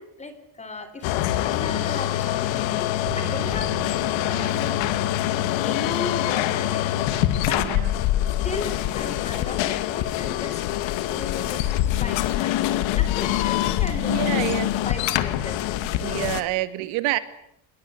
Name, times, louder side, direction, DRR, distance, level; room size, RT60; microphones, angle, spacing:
voice 1, 0.0-4.9 5.6-7.6 8.4-14.5 14.8-16.2, left 3 dB, 15° left, 10 dB, 3.7 m, -37 dB
sound 1, 1.0-16.4, left 13 dB, 80° left, 2.2 m, -24 dB
sound 2, 3.0-13.8, right 6 dB, 25° right, 5.0 m, -44 dB
voice 2, 7.6-7.9 14.1-14.7 16.0-17.2, right 16 dB, 85° right, 12 dB, 2.4 m, -27 dB
27.5 x 20.5 x 9.6 m, 0.74 s
cardioid pair, 160°, 45 cm